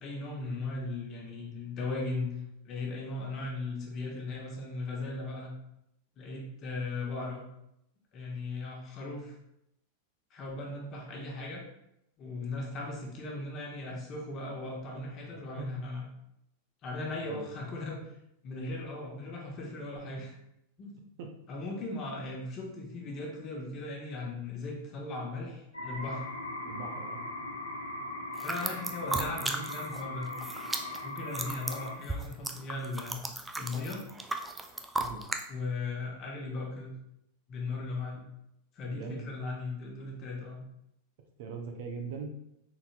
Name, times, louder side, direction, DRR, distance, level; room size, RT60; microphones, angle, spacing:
voice 1, 0.0-2.3 2.6-5.5 6.2-7.4 8.1-9.3 10.3-11.6 12.2-16.0 16.8-18.0 18.4-20.4 20.8-20.9 21.5-26.3 28.4-30.3 31.0-33.2 33.5-34.0 35.5-36.9 37.5-38.2 38.7-40.6, left 3 dB, 35° left, -1 dB, 1.1 m, -37 dB
voice 2, 15.3-15.7 17.3-17.5 21.2-21.3 26.6-27.2 29.1-29.5 35.0-35.2 38.8-39.3 41.4-42.3, right 5 dB, 50° right, 2 dB, 0.6 m, -41 dB
sound 1, 25.7-32.0, left 2 dB, 80° left, 0.7 m, -39 dB
sound 2, 28.3-30.0 30.3-35.4, right 2 dB, 10° right, 0.4 m, -35 dB
4.1 x 4.0 x 2.4 m, 0.81 s
figure-of-eight pair, 90°, 0 cm